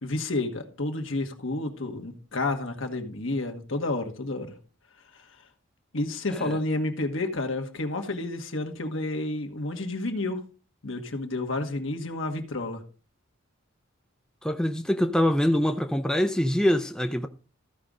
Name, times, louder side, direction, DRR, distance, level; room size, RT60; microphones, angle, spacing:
voice 1, 0.0-4.5 5.1-5.3 5.9-10.4 10.8-12.8, left 2 dB, 70° left, 1.3 m, -30 dB
voice 2, 14.4-17.3, equal, 5° left, 0.4 m, -24 dB
14.0 x 5.1 x 3.7 m
head